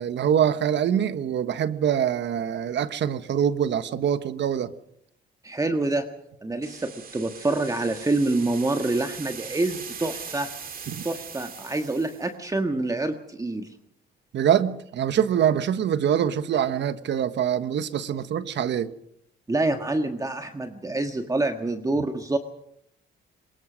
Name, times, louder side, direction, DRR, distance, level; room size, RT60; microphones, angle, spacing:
voice 1, 0.0-4.7 10.9-11.0 14.3-18.9, right 9 dB, 65° right, 1.3 m, -24 dB
voice 2, 5.4-6.1 6.4-10.5 11.0-13.7 19.5-22.4, right 2 dB, 15° right, 1.6 m, -26 dB
sound 1, 6.6-12.3, right 6 dB, 45° right, 2.3 m, -40 dB
23.5 x 20.5 x 6.3 m
cardioid pair, 90°, 20 cm